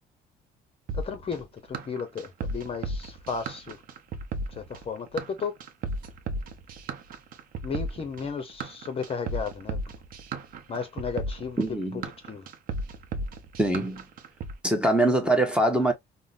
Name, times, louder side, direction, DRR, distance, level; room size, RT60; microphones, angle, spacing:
voice 1, 0.9-3.8 4.5-5.6 7.6-9.8 10.7-11.6 11.9-12.5, left 5 dB, 35° left, 0.7 m, -34 dB
sound 1, 0.9-14.5, right 2 dB, 55° right, 0.7 m, -35 dB
voice 2, 11.6-12.1 13.6-14.0 14.6-15.9, right 1 dB, 5° right, 0.9 m, -23 dB
3.7 x 2.1 x 2.4 m
cardioid pair, 110°, 17 cm